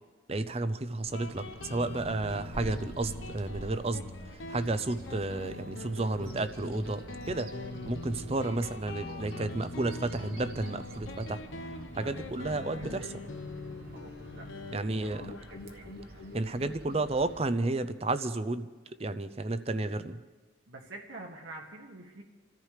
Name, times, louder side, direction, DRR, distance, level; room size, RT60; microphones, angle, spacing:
voice 1, 0.3-4.1 4.3-7.5 7.8-11.4 11.9-13.1 14.7-15.3 16.3-18.7 19.0-20.2, right 2 dB, 30° right, 12 dB, 0.6 m, -32 dB
Guitar, 1.1-18.3, left 2 dB, 85° left, 1.0 m, -43 dB
Bird vocalization bird call bird song, 1.1-17.5, right 1 dB, 50° right, 1.3 m, -48 dB
voice 2, 9.0-9.5 12.0-13.1 13.9-14.5 14.8-15.3 15.7-15.9 20.7-22.2, right 2 dB, 85° right, -2 dB, 1.8 m, -48 dB
28.5 x 14.0 x 3.3 m, 1.3 s
head